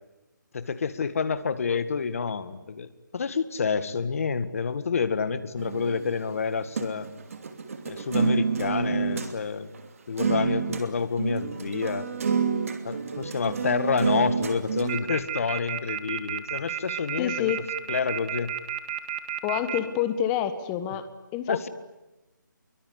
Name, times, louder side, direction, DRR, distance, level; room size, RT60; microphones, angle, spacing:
voice 1, 0.5-7.1 7.9-9.7 10.1-12.1 12.8-17.5 17.9-18.5 21.5-21.7, left 5 dB, 45° left, 12 dB, 1.9 m, -28 dB
sound 1, 5.6-9.3 9.7-9.8 10.2-10.9 11.2-15.0, right 5 dB, 45° right, 2.8 m, -28 dB
sound 2, 14.9-19.8, right 11 dB, 25° right, 1.7 m, -31 dB
voice 2, 17.2-17.6 19.4-21.7, left 10 dB, 10° left, 11 dB, 1.3 m, -28 dB
25.5 x 23.5 x 10.0 m, 1.0 s
figure-of-eight pair, 165°, 11 cm